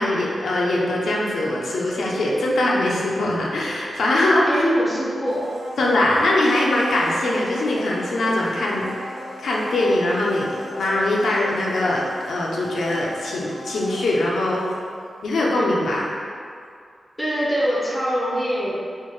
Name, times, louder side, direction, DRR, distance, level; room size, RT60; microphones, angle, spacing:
voice 1, 0.0-4.6 5.8-8.9 9.4-14.6 15.2-16.1, left 1 dB, 70° left, -4 dB, 0.5 m, -22 dB
voice 2, 4.5-5.5 17.2-18.9, equal, ahead, -6 dB, 0.6 m, -23 dB
Domestic sounds home sounds, 5.3-15.2 15.5-15.6, equal, 70° right, 1.0 m, -37 dB
4.3 x 2.1 x 3.1 m, 2.3 s
wide cardioid pair, 180°, 0 cm